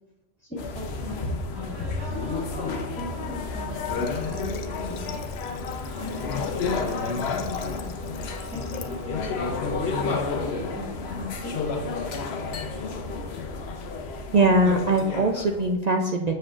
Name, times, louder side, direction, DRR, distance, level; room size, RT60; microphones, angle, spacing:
voice 1, 0.4-2.1 2.9-5.2 6.0-8.0 8.5-10.8 11.1-11.8, left 1 dB, 10° left, -5 dB, 1.6 m, -40 dB
sound 1, 0.6-15.7, left 4 dB, 60° left, 0.9 m, -31 dB
sound 2, 1.5-5.0 5.5-14.1, right 1 dB, 55° right, 2.3 m, -45 dB
Water / Water tap faucet, 3.9-9.0, left 8 dB, 90° left, 1.0 m, -45 dB
voice 2, 14.3-16.3, right 2 dB, 75° right, 2 dB, 0.3 m, -21 dB
7.3 x 6.4 x 2.4 m, 1.0 s
omnidirectional pair, 1.3 m